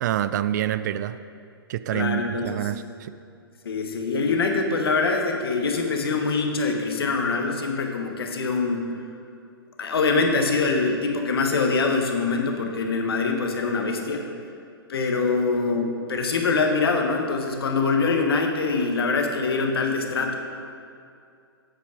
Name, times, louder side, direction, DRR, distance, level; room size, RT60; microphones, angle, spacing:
voice 1, 0.0-1.2 1.7-3.1, right 11 dB, 45° right, 13 dB, 0.4 m, -27 dB
voice 2, 1.9-2.7 3.6-8.8 9.8-14.2 14.9-20.4, left 4 dB, 70° left, 3 dB, 1.3 m, -24 dB
8.8 x 7.7 x 4.9 m, 2.4 s
figure-of-eight pair, 120°, 13 cm